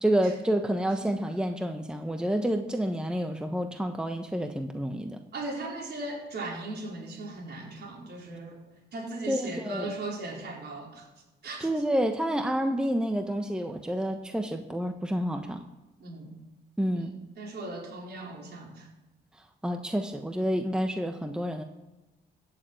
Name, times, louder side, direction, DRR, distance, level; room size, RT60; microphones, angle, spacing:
voice 1, 0.0-5.2 9.3-9.8 11.6-15.6 16.8-17.1 19.6-21.6, equal, 5° right, 6 dB, 1.0 m, -29 dB
voice 2, 5.3-8.6 8.9-11.1 11.4-11.7 16.0-16.3 16.9-18.9, right 2 dB, 55° right, -1 dB, 4.7 m, -38 dB
15.0 x 7.0 x 8.9 m, 1.1 s
cardioid pair, 90°, 20 cm